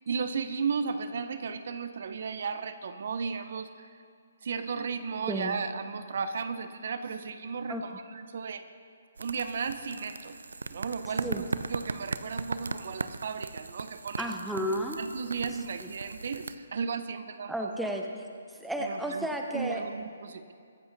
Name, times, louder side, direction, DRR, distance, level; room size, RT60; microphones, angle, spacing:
voice 1, 0.1-3.9 4.4-8.6 9.2-10.4 10.7-14.3 15.0-17.7 18.8-19.3 19.5-20.5, right 5 dB, 60° right, 11 dB, 0.8 m, -35 dB
voice 2, 5.3-5.6 7.7-7.8 11.2-11.4 14.2-15.0 17.5-18.1 18.5-19.8, equal, ahead, 2 dB, 0.8 m, -32 dB
sound 1, 9.2-16.6, right 3 dB, 90° right, 0.5 m, -38 dB
23.0 x 7.9 x 4.0 m, 2.3 s
hypercardioid pair, 155°, 0 cm